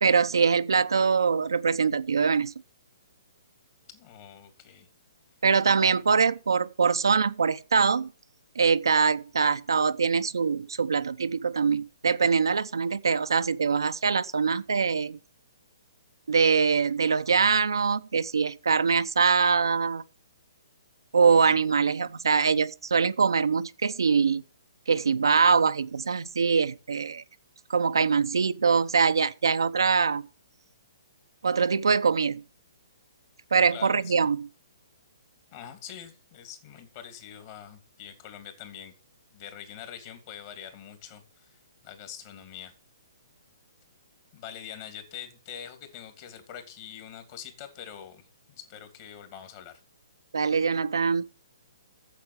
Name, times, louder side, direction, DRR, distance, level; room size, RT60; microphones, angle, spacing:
voice 1, 0.0-2.5 5.4-8.1 8.6-15.2 16.3-20.0 21.1-24.4 24.9-27.2 27.7-30.2 31.4-32.4 33.5-34.5 50.3-51.2, right 5 dB, 85° right, 0.7 m, -23 dB
voice 2, 3.9-4.9 21.3-21.6 33.7-34.1 35.5-38.9 39.3-41.6 41.8-42.7 44.3-49.8, left 9 dB, 40° left, 2.8 m, -44 dB
8.3 x 7.7 x 8.7 m
hypercardioid pair, 145°, 2 cm